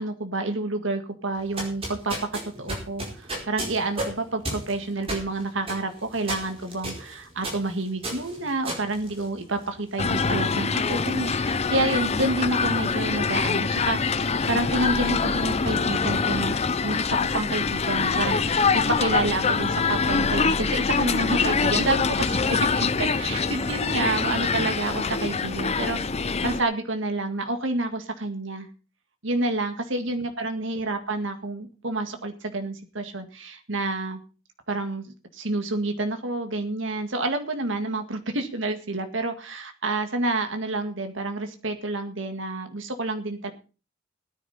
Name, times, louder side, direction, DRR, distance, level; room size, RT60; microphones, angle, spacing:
voice 1, 0.0-2.1 2.6-28.7 29.2-34.2 34.7-43.5, right 2 dB, 70° right, 6 dB, 1.8 m, -29 dB
sound 1, 1.4-9.8, right 1 dB, 30° right, 4.6 m, -34 dB
sound 2, 10.0-26.6, left 5 dB, 30° left, 0.7 m, -24 dB
18.0 x 10.0 x 4.2 m, 0.35 s
head